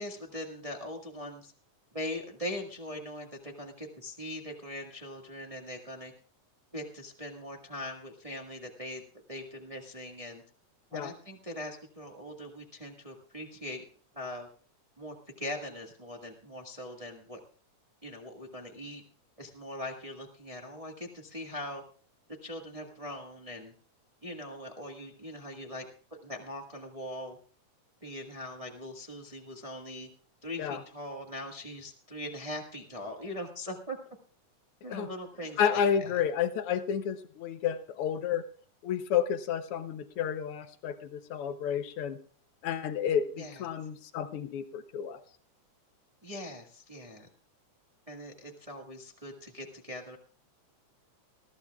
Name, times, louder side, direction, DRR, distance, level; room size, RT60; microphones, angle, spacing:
voice 1, 0.0-1.5 1.9-6.1 6.7-9.0 9.3-10.4 10.9-13.8 14.1-14.5 15.0-17.4 18.0-19.0 19.4-21.8 22.4-23.7 24.2-25.8 26.2-27.4 28.0-30.1 30.4-34.0 34.8-36.2 43.4-43.7 46.2-47.3 48.1-50.2, left 1 dB, 35° right, 1 dB, 0.5 m, -41 dB
voice 2, 35.6-38.4 38.8-42.2 42.6-45.2, left 8 dB, 90° left, 9 dB, 1.2 m, -31 dB
20.5 x 14.5 x 2.3 m, 0.43 s
omnidirectional pair, 3.5 m